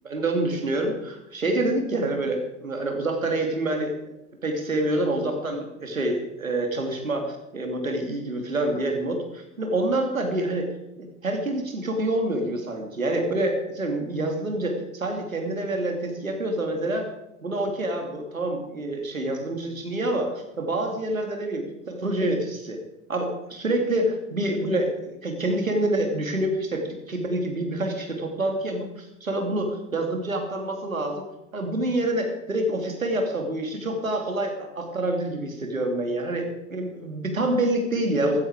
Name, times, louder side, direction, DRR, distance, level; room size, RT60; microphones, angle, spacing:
voice 1, 0.0-3.9 4.4-10.7 11.0-17.1 17.4-22.8 23.1-31.3 31.5-38.4, right 1 dB, 90° right, 3 dB, 2.7 m, -27 dB
15.0 x 14.0 x 4.9 m, 0.88 s
figure-of-eight pair, 80°, 39 cm